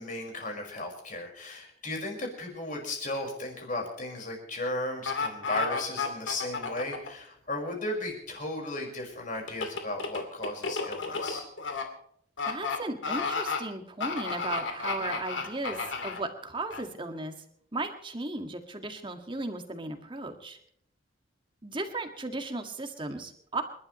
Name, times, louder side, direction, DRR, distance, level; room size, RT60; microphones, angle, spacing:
voice 1, 0.0-11.4, left 2 dB, 45° left, 2 dB, 5.3 m, -35 dB
sound 1, 5.1-7.1 9.5-11.8 12.4-12.8 13.0-13.6 14.0-16.2 16.7-16.8, left 4 dB, 90° left, 2.6 m, -32 dB
voice 2, 12.4-17.3 17.7-20.6 21.6-23.6, right 2 dB, 25° right, 6 dB, 1.9 m, -36 dB
29.0 x 12.0 x 3.2 m, 0.65 s
head